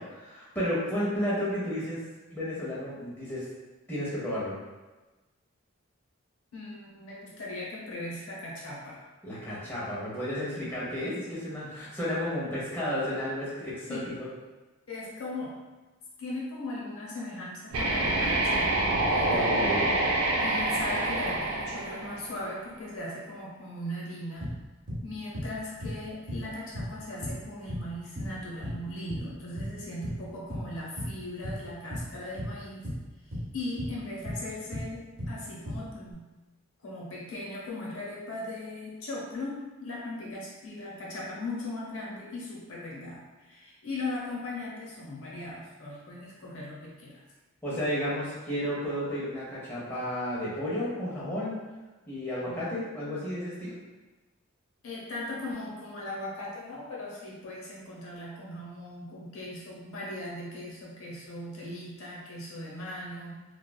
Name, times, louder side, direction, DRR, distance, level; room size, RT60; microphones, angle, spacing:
voice 1, 0.0-2.0 2.3-3.4 3.9-4.5 9.2-14.3 19.2-19.9 47.6-51.6 52.1-53.7, equal, 10° left, -9 dB, 0.6 m, -32 dB
voice 2, 6.5-9.0 10.5-10.7 11.6-11.7 12.4-12.5 13.9-14.2 14.9-15.6 16.2-18.7 19.1-19.7 20.4-24.5 25.0-32.9 33.3-36.3 36.8-47.2 52.4-52.7 54.8-63.4, left 1 dB, 85° left, -5 dB, 0.8 m, -38 dB
sound 1, 17.7-22.6, right 2 dB, 90° right, 0.5 m, -27 dB
sound 2, 24.4-25.1 25.3-25.5 25.8-26.5 26.7-27.9 28.2-28.8 29.1-29.7 30.0-30.2 30.5-31.2 31.4-32.6 32.8-34.0 34.2-35.4 35.7-36.1, equal, 50° right, 0.9 m, -35 dB
3.0 x 2.3 x 2.2 m, 1.2 s
head